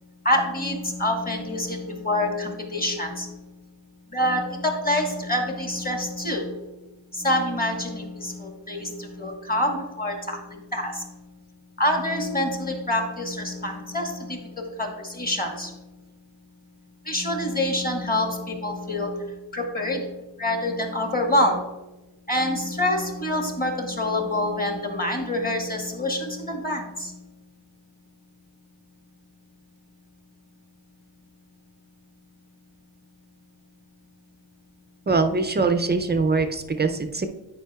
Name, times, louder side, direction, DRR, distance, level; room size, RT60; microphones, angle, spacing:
voice 1, 0.2-3.5 4.1-6.7 7.1-11.2 11.8-15.9 17.0-21.7 22.3-27.3 36.8-36.9, left 1 dB, 20° left, 2 dB, 1.1 m, -26 dB
voice 2, 35.1-37.3, right 3 dB, 25° right, 8 dB, 0.3 m, -23 dB
10.0 x 5.1 x 2.3 m, 1.0 s
wide cardioid pair, 130°, 47 cm